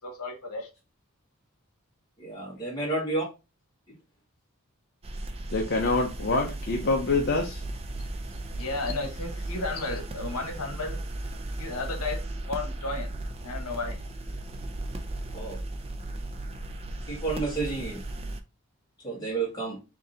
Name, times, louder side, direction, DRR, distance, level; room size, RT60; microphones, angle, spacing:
voice 1, 0.0-0.7 8.6-11.0 11.6-13.1 13.4-14.0, left 3 dB, 80° left, 4 dB, 1.0 m, -33 dB
voice 2, 2.2-3.3 15.3-15.6 17.1-18.0 19.0-19.8, right 3 dB, 20° left, -4 dB, 1.6 m, -30 dB
sound 1, 5.0-18.4, right 1 dB, 25° right, 0.4 m, -36 dB
voice 3, 5.5-7.6, left 3 dB, 45° left, 1 dB, 0.6 m, -26 dB
3.7 x 2.7 x 3.8 m, 0.29 s
head